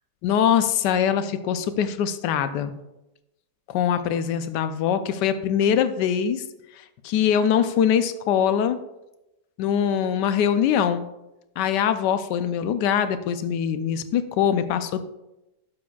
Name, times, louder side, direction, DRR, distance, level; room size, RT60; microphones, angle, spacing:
voice 1, 0.2-2.8 3.7-6.4 7.0-8.8 9.6-11.1 11.6-15.1, left 8 dB, 85° left, 11 dB, 1.2 m, -23 dB
11.5 x 6.9 x 2.4 m, 0.95 s
omnidirectional pair, 1.8 m